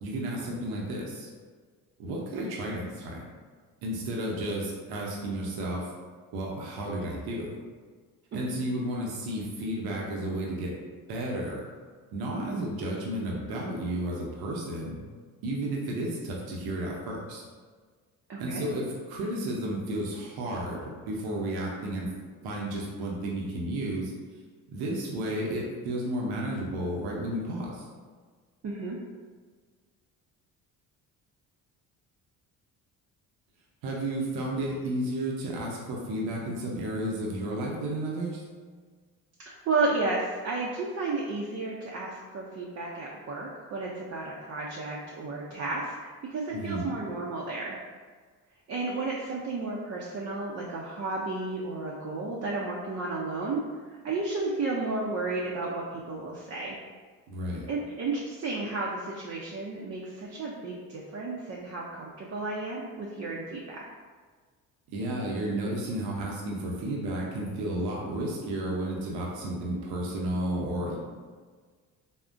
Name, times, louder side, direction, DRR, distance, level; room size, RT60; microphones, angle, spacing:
voice 1, 0.0-1.3 2.0-3.3 3.8-5.9 6.3-7.6 8.3-10.7 11.1-11.6 12.1-15.0 15.4-17.4 18.4-22.1 22.4-24.1 24.7-27.9 33.8-38.4 46.5-46.9 57.3-57.7 64.9-71.0, right 1 dB, 85° right, -3 dB, 0.7 m, -32 dB
voice 2, 18.3-18.6 28.6-29.0 39.5-47.8 48.7-53.6 53.9-56.8 57.7-63.8, right 3 dB, 40° right, -3 dB, 0.5 m, -32 dB
3.6 x 2.1 x 2.5 m, 1.5 s
cardioid pair, 85°, 37 cm